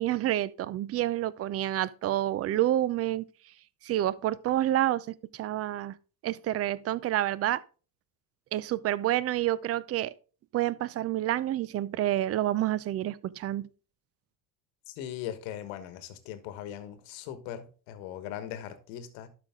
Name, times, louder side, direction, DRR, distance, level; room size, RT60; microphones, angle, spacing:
voice 1, 0.0-3.2 3.8-5.1 5.3-5.9 6.2-7.6 8.5-10.1 10.5-13.7, right 13 dB, 30° right, 0.5 m, -28 dB
voice 2, 14.9-19.3, left 11 dB, 65° left, 1.4 m, -40 dB
12.0 x 5.0 x 3.6 m
hypercardioid pair, 70°, 49 cm